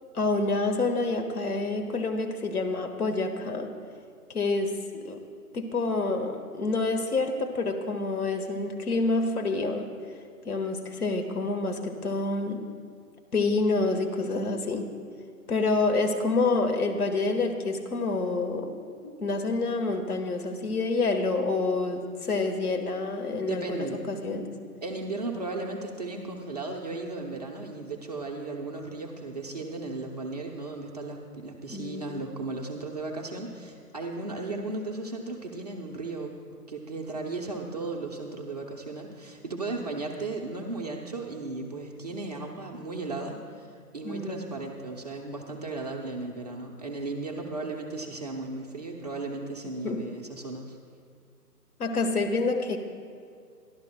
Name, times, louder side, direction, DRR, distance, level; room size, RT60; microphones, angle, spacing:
voice 1, 0.1-3.7 4.3-5.2 5.5-9.9 10.4-12.7 13.3-14.9 15.5-18.8 19.0-24.5 31.7-32.2 44.0-44.6 49.8-50.1 51.8-52.8, left 3 dB, 65° left, 5 dB, 1.5 m, -28 dB
voice 2, 23.5-24.0 24.8-36.4 36.7-50.8, right 3 dB, 25° right, 0 dB, 0.7 m, -35 dB
24.5 x 12.0 x 2.2 m, 2.3 s
figure-of-eight pair, 150°, 48 cm